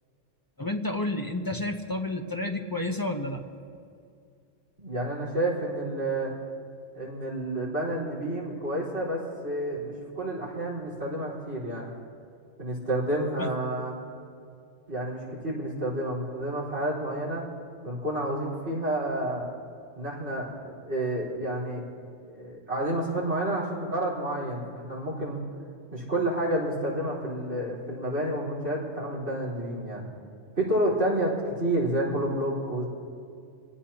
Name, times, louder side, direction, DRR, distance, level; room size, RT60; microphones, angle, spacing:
voice 1, 0.6-3.4 13.4-13.5, left 1 dB, 20° left, 3 dB, 0.8 m, -30 dB
voice 2, 4.8-6.3 6.9-11.9 12.6-14.0 14.9-17.5 17.8-19.5 19.9-21.8 22.3-25.4 25.9-30.1 30.6-32.9, right 1 dB, 55° right, -5 dB, 4.8 m, -30 dB
26.0 x 18.5 x 2.9 m, 2.4 s
omnidirectional pair, 1.3 m